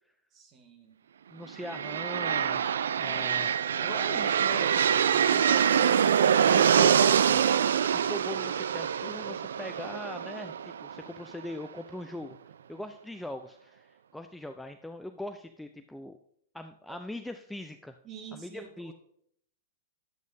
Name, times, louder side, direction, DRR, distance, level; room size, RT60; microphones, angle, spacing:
voice 1, 0.3-1.0 16.9-17.0 18.0-18.9, right 7 dB, 30° right, 4 dB, 1.7 m, -47 dB
voice 2, 1.3-2.6 3.0-3.5 3.8-6.2 6.5-7.4 8.1-12.4 12.7-16.2 16.5-18.0 18.3-18.9, left 1 dB, 5° left, 7 dB, 0.5 m, -41 dB
sound 1, 1.6-11.4, right 8 dB, 75° right, 0.3 m, -25 dB
10.5 x 8.2 x 2.7 m, 0.68 s
hypercardioid pair, 110°, 0 cm